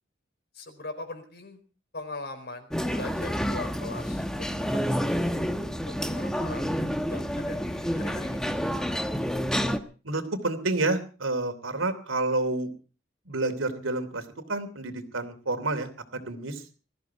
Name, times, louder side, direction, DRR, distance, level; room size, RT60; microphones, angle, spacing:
voice 1, 0.5-1.6 1.9-5.1 5.9-6.7 7.1-8.6, left 2 dB, 55° left, 8 dB, 4.4 m, -41 dB
sound 1, 2.7-9.8, equal, 5° left, 1.2 m, -29 dB
voice 2, 10.0-12.7 13.3-14.2 14.5-16.5, right 2 dB, 90° right, 8 dB, 3.0 m, -29 dB
20.5 x 14.5 x 4.7 m, 0.37 s
head